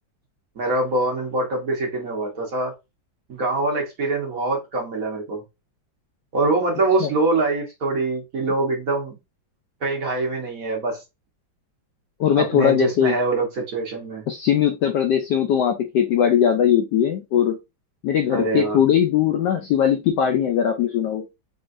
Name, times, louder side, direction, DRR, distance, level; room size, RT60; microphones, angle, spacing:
voice 1, 0.6-2.7 3.3-5.4 6.3-9.1 9.8-11.0 12.4-14.3 18.3-18.8, right 2 dB, 50° right, 1.4 m, -24 dB
voice 2, 12.2-13.1 14.3-17.6 18.0-21.3, left 9 dB, 70° left, 1.1 m, -20 dB
3.9 x 3.6 x 2.5 m
omnidirectional pair, 2.2 m